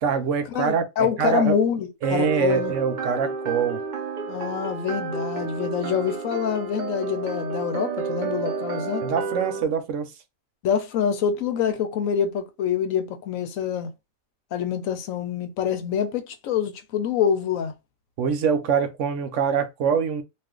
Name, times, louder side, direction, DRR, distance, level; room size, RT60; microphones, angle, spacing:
voice 1, 0.0-1.6 2.0-3.8 9.0-10.1 18.2-20.2, right 6 dB, 70° right, 0.9 m, -24 dB
voice 2, 0.5-2.7 4.3-9.0 10.6-13.9 14.5-17.7, left 8 dB, 80° left, 1.1 m, -26 dB
sound 1, 2.0-9.6, right 5 dB, 45° right, 0.6 m, -31 dB
2.5 x 2.4 x 3.6 m
omnidirectional pair, 1.4 m